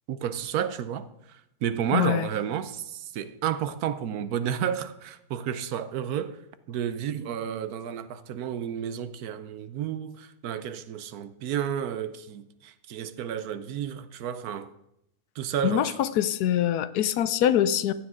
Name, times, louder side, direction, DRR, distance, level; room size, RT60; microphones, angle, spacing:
voice 1, 0.1-6.4 6.7-14.7 15.4-16.0, right 9 dB, 70° right, 1.2 m, -31 dB
voice 2, 1.9-2.3 15.6-17.9, left 11 dB, 75° left, 1.1 m, -24 dB
15.5 x 9.9 x 3.7 m
omnidirectional pair, 1.7 m